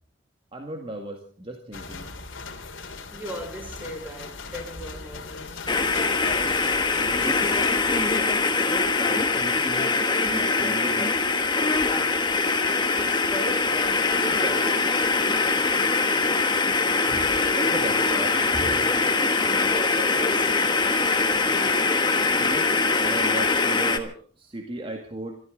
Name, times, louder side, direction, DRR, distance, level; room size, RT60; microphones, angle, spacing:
voice 1, 0.5-2.1 7.0-8.1 9.1-9.9 10.3-11.2 17.6-18.4 22.4-22.7 23.0-25.4, right 2 dB, 25° right, 2.0 m, -36 dB
sound 1, 1.7-8.2, left 3 dB, 70° left, 2.8 m, -39 dB
voice 2, 3.1-5.7 12.5-14.9 16.0-16.3 17.1-17.4 18.5-20.6, equal, 10° right, 3.5 m, -38 dB
sound 2, 5.7-24.0, left 4 dB, 20° left, 1.4 m, -23 dB
25.5 x 14.0 x 4.0 m
head